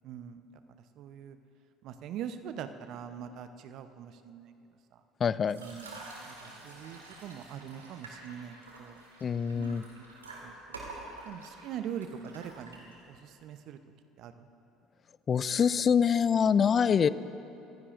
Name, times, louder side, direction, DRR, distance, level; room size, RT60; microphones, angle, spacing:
voice 1, 0.0-0.4 0.7-1.4 1.8-4.5 4.9-5.0 5.6-9.0 9.5-9.8 10.4-10.8 11.2-13.8 14.2-14.5, right 9 dB, 55° right, 10 dB, 0.8 m, -43 dB
voice 2, 5.2-5.6 9.2-9.8 15.3-17.1, left 7 dB, 40° left, 17 dB, 0.4 m, -25 dB
sound 1, 5.4-13.2, right 2 dB, 85° right, 2.0 m, -48 dB
28.0 x 15.5 x 2.6 m, 2.8 s
figure-of-eight pair, 60°, 0 cm